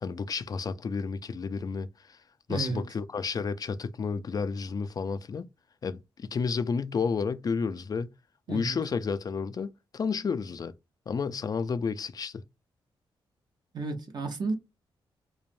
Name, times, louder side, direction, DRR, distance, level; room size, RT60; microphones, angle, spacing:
voice 1, 0.0-2.2 2.5-5.5 5.8-8.1 8.5-10.7 11.1-12.4, left 5 dB, 40° left, 0.3 m, -31 dB
voice 2, 2.5-2.9 8.5-8.8 13.7-14.5, right 3 dB, 50° right, 0.7 m, -32 dB
3.1 x 2.1 x 2.5 m
cardioid pair, 90°, 9 cm